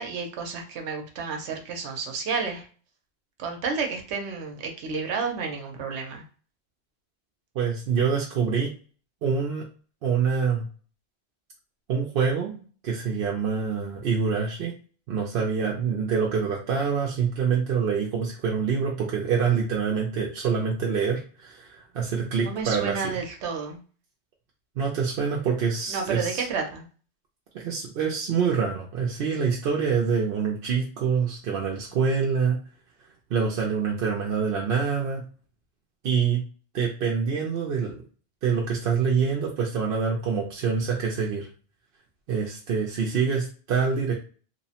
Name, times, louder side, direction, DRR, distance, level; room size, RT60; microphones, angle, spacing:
voice 1, 0.0-2.7 3.4-6.2 22.4-23.8 25.9-26.9, right 5 dB, 90° right, 3 dB, 0.9 m, -31 dB
voice 2, 7.6-8.7 9.2-9.6 10.0-10.6 11.9-14.7 15.1-23.1 24.8-26.5 27.5-32.6 33.3-35.2 36.0-36.4 36.7-38.0 38.4-41.5 42.3-44.1, right 6 dB, 65° right, -2 dB, 0.7 m, -26 dB
3.0 x 2.0 x 2.7 m, 0.40 s
omnidirectional pair, 1.1 m